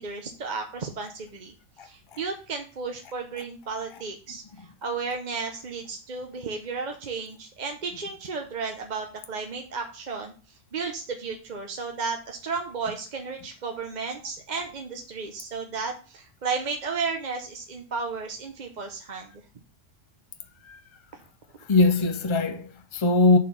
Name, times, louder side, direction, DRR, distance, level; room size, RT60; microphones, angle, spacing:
voice 1, 0.0-1.5 1.8-10.3 10.7-19.3 21.1-21.2, right 4 dB, 40° right, 0.8 m, -33 dB
voice 2, 21.7-23.4, left 2 dB, 50° left, 0.3 m, -21 dB
6.5 x 4.4 x 5.3 m
omnidirectional pair, 1.3 m